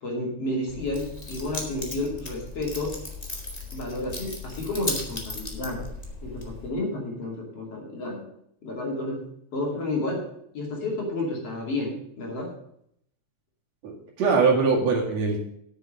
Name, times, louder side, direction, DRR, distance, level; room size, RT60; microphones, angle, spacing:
voice 1, 0.0-3.0 3.7-5.8 6.2-8.3 8.6-9.3 9.5-10.2 10.5-12.5, left 2 dB, 50° left, -2 dB, 3.6 m, -31 dB
Keys jangling, 0.7-6.7, left 2 dB, 20° left, 1.0 m, -36 dB
voice 2, 13.8-15.4, right 4 dB, 60° right, -2 dB, 3.2 m, -22 dB
8.9 x 6.8 x 7.6 m, 0.72 s
omnidirectional pair, 3.5 m